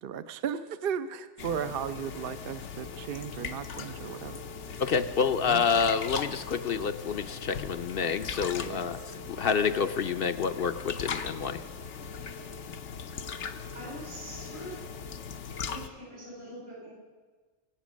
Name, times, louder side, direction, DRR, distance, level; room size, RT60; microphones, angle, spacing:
voice 1, 0.0-4.4 5.5-5.6 8.6-8.9, right 8 dB, 60° right, 11 dB, 0.7 m, -35 dB
sound 1, 1.4-15.9, left 6 dB, 80° left, 1.1 m, -39 dB
voice 2, 4.8-11.6, left 6 dB, 60° left, 9 dB, 0.8 m, -28 dB
voice 3, 13.7-14.8 15.7-16.9, equal, 90° right, -4 dB, 6.1 m, -43 dB
24.0 x 8.2 x 6.3 m, 1.4 s
omnidirectional pair, 1.2 m